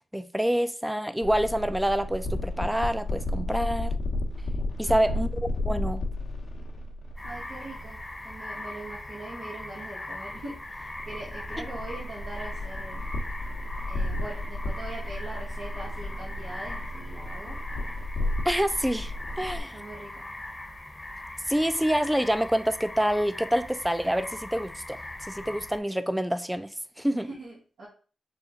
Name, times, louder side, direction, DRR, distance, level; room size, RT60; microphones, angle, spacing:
voice 1, 0.1-3.9 4.8-6.0 11.6-11.7 18.5-19.8 21.5-27.3, equal, 5° right, 0.4 m, -27 dB
sound 1, 1.2-8.0 10.3-19.6, left 1 dB, 75° left, 0.9 m, -33 dB
voice 2, 4.8-5.2 7.2-13.0 13.9-17.6 19.5-20.2 27.1-27.9, right 2 dB, 90° right, 1.4 m, -42 dB
sound 2, 7.2-25.8, left 1 dB, 25° left, 0.9 m, -40 dB
5.0 x 2.3 x 3.8 m
supercardioid pair, 45°, 0 cm